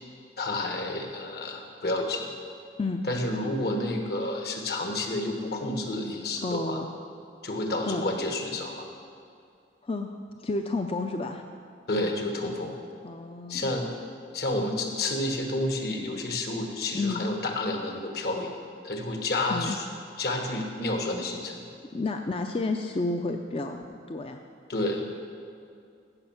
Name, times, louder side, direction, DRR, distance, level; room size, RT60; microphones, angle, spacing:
voice 1, 0.4-2.3 3.0-6.8 7.4-8.8 11.9-12.8 13.5-13.9 14.3-18.5 18.8-19.8 20.2-21.6 24.7-25.1, left 2 dB, 60° left, 3 dB, 1.4 m, -30 dB
voice 2, 6.4-6.9 7.8-8.0 9.8-10.2 10.4-11.4 13.0-13.6 16.9-17.3 19.5-19.8 21.9-24.4, left 3 dB, 30° left, 5 dB, 0.4 m, -30 dB
15.5 x 6.3 x 5.9 m, 2.4 s
head